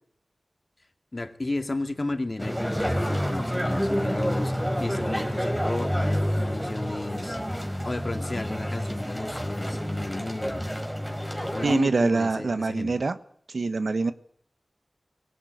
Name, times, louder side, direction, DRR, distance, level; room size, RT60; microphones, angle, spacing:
voice 1, 1.1-4.5 4.8-7.4 7.8-10.6 11.5-12.9, left 2 dB, 45° left, 7 dB, 2.2 m, -33 dB
sound 1, 2.4-11.8, equal, 5° right, 4.6 m, -28 dB
voice 2, 11.6-13.2 13.5-14.1, right 3 dB, 75° right, 12 dB, 1.2 m, -24 dB
20.0 x 17.5 x 9.5 m, 0.65 s
cardioid pair, 45°, 0 cm